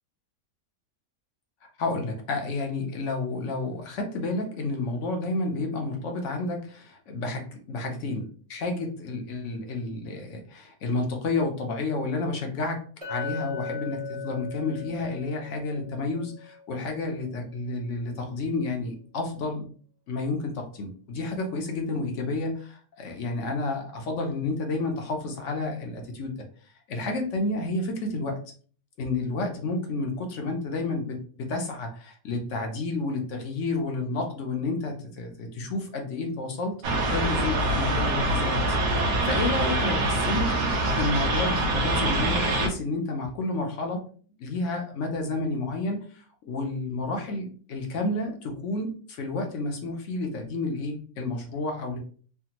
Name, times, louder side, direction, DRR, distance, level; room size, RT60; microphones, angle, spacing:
voice 1, 1.6-19.7 20.1-26.3 26.9-28.4 29.0-40.5 40.9-44.1 44.4-52.0, left 2 dB, 65° left, 3 dB, 0.8 m, -30 dB
Chink clink, 13.0-17.3, left 4 dB, 30° right, 0.7 m, -38 dB
sound 1, 36.8-42.7, right 1 dB, 75° right, 1.1 m, -25 dB
3.3 x 2.1 x 2.8 m, 0.44 s
omnidirectional pair, 1.5 m